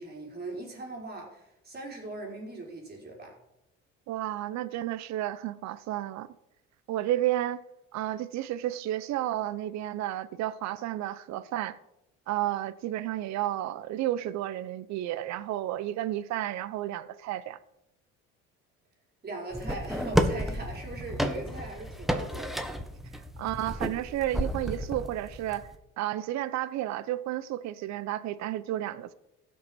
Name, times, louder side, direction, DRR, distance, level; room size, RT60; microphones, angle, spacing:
voice 1, 0.0-3.4 19.2-22.7, right 2 dB, 30° right, 4.7 m, -40 dB
voice 2, 4.1-6.3 6.9-7.6 7.9-11.8 12.3-17.6 23.4-25.7 26.0-29.1, right 13 dB, 65° right, 0.8 m, -32 dB
sound 1, 19.5-25.8, equal, ahead, 1.4 m, -31 dB
15.5 x 6.5 x 6.1 m
supercardioid pair, 85°, 30 cm